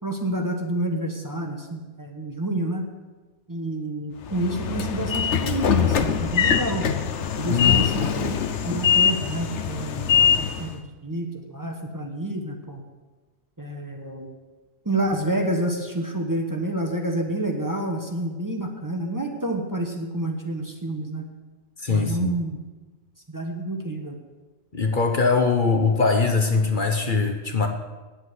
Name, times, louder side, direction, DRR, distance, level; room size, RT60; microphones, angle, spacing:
voice 1, 0.0-2.9 3.5-6.9 7.4-8.3 8.6-12.8 13.6-14.3 14.8-21.3 21.9-22.6 23.3-24.2, right 1 dB, 20° right, 2 dB, 1.1 m, -28 dB
Train / Sliding door, 4.3-10.8, left 8 dB, 85° left, 1.1 m, -23 dB
voice 2, 7.5-7.9 21.8-22.4 24.7-27.7, left 4 dB, 50° left, 5 dB, 1.0 m, -22 dB
9.6 x 8.1 x 8.1 m, 1.2 s
omnidirectional pair, 1.2 m